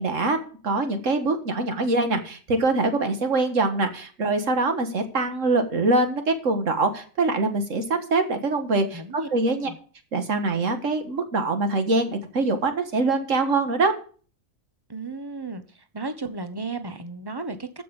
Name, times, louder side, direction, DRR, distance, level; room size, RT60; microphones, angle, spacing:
voice 1, 0.0-9.7 10.1-13.9, right 3 dB, 70° right, 7 dB, 2.0 m, -24 dB
voice 2, 8.9-9.3 9.6-9.8 14.9-15.6 15.9-17.8, right 3 dB, 20° right, 10 dB, 1.0 m, -34 dB
14.5 x 5.9 x 7.0 m, 0.42 s
omnidirectional pair, 1.4 m